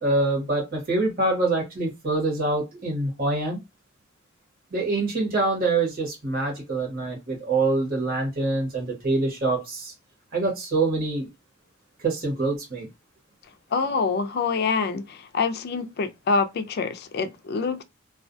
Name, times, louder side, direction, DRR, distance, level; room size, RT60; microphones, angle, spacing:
voice 1, 0.0-3.6 4.7-9.9 10.3-11.3 12.0-12.9, right 2 dB, 50° right, 1.1 m, -25 dB
voice 2, 13.7-17.8, left 4 dB, 55° left, 0.4 m, -26 dB
2.3 x 2.2 x 2.6 m
head